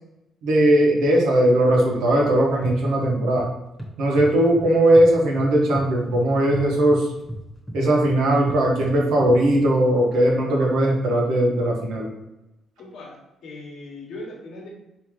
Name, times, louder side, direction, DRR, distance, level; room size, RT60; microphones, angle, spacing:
voice 1, 0.4-3.5 4.0-7.1 7.7-12.1, right 1 dB, 85° right, -1 dB, 1.0 m, -19 dB
sound 1, 1.9-3.5 3.8-5.1 5.4-9.7, equal, 5° left, 1.0 m, -35 dB
voice 2, 12.8-14.7, left 2 dB, 75° left, -1 dB, 1.0 m, -39 dB
3.6 x 2.8 x 3.1 m, 0.92 s
cardioid pair, 90°, 0 cm